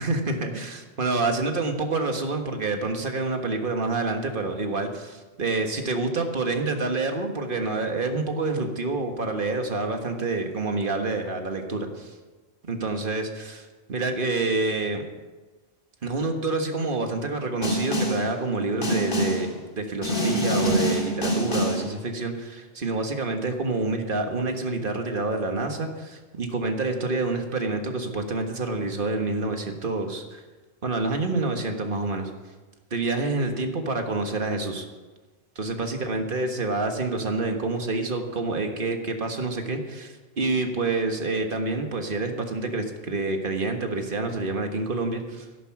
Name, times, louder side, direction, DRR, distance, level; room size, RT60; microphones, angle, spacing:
voice 1, 0.0-12.1 12.7-15.0 16.0-30.4 30.8-32.3 32.9-34.9 35.6-45.5, right 3 dB, 50° right, 4 dB, 1.7 m, -27 dB
Snare drum, 17.6-18.3 18.8-19.5 20.0-21.9, equal, 50° left, 2.8 m, -25 dB
13.0 x 11.0 x 6.0 m, 1.3 s
omnidirectional pair, 1.1 m